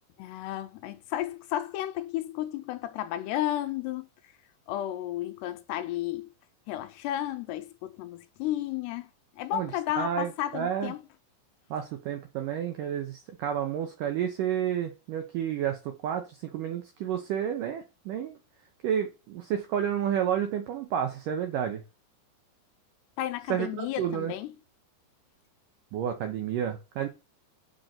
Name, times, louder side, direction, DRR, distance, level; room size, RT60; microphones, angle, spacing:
voice 1, 0.2-4.1 4.7-6.3 6.7-9.1 9.4-11.0 23.2-24.5, left 13 dB, 80° left, 2.7 m, -33 dB
voice 2, 9.5-10.9 11.7-18.4 18.8-21.8 23.5-24.3 25.9-27.1, right 9 dB, 80° right, 1.9 m, -31 dB
6.3 x 5.3 x 5.8 m
omnidirectional pair, 5.0 m